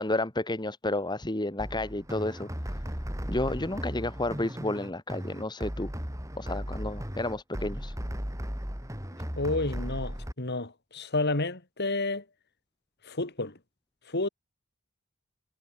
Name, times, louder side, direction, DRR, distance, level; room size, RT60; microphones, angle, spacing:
voice 1, 0.0-2.5 3.3-5.9 6.4-7.9, left 2 dB, 20° left, 1.8 m, -31 dB
sound 1, 1.6-10.3, equal, 15° right, 6.1 m, -36 dB
voice 2, 9.4-12.2 13.0-13.5 14.1-14.3, left 2 dB, 50° left, 3.4 m, -30 dB
head